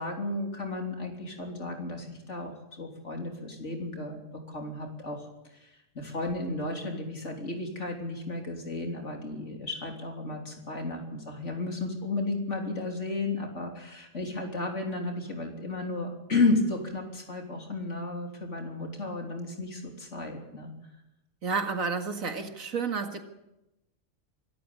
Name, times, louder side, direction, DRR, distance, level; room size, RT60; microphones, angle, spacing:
voice 1, 0.0-5.3 5.5-20.7, left 2 dB, 60° left, 2 dB, 3.8 m, -33 dB
voice 2, 21.4-23.2, right 5 dB, 90° right, 6 dB, 2.3 m, -31 dB
24.5 x 13.0 x 8.6 m, 0.92 s
omnidirectional pair, 1.4 m